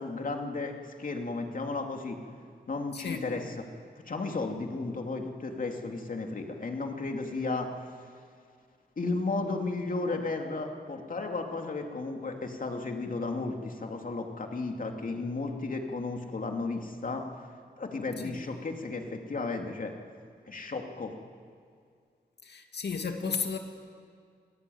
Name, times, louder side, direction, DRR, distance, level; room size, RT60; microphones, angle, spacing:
voice 1, 0.0-2.2 2.7-3.6 4.1-7.7 9.0-17.2 17.8-19.9 20.5-21.1, left 3 dB, 55° left, 3 dB, 2.7 m, -34 dB
voice 2, 2.9-3.3 18.2-18.4 22.4-23.6, left 5 dB, 80° left, 4 dB, 2.4 m, -33 dB
25.5 x 17.0 x 9.4 m, 2.1 s
wide cardioid pair, 90°, 17 cm